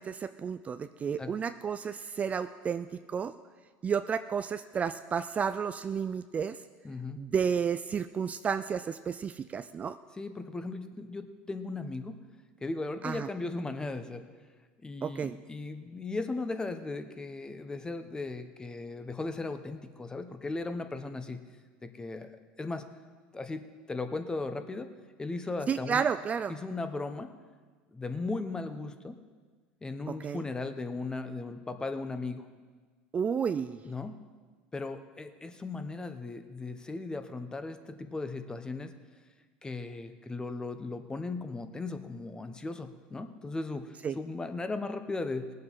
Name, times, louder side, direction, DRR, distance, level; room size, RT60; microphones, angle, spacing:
voice 1, 0.0-3.3 3.8-6.6 7.2-10.0 13.0-13.3 15.0-15.4 25.7-26.5 30.1-30.4 33.1-33.8 44.0-44.2, right 7 dB, 30° right, 11 dB, 0.4 m, -31 dB
voice 2, 6.8-7.2 10.2-12.2 12.6-14.2 14.8-21.4 21.8-22.3 22.6-22.8 23.3-24.9 25.2-26.1 26.5-27.3 27.9-29.2 29.8-32.5 33.8-34.2 34.7-38.9 39.6-45.5, left 3 dB, 15° left, 8 dB, 1.1 m, -37 dB
19.0 x 7.8 x 5.7 m, 1.5 s
hypercardioid pair, 95°, 5 cm